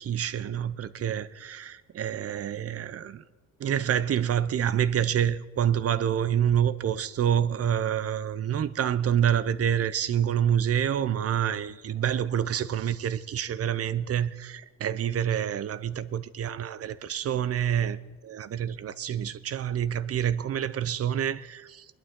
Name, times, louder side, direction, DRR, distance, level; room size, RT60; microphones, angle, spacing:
voice 1, 0.0-3.2 3.6-18.0 18.3-22.0, right 9 dB, 50° right, 0.7 m, -27 dB
21.0 x 11.5 x 3.7 m
cardioid pair, 90°, 30 cm